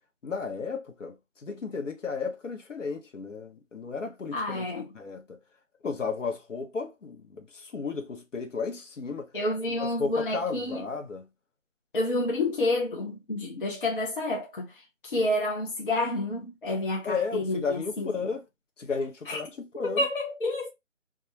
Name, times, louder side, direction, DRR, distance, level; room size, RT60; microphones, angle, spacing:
voice 1, 0.2-4.6 4.9-5.4 5.8-9.3 9.7-11.2 17.0-18.4 18.8-20.0, left 5 dB, 70° left, 0.9 m, -33 dB
voice 2, 4.3-4.9 9.3-10.9 11.9-18.3 19.3-19.4 19.8-20.7, left 2 dB, 40° left, 0.6 m, -29 dB
2.3 x 2.2 x 2.9 m
figure-of-eight pair, 165°, 39 cm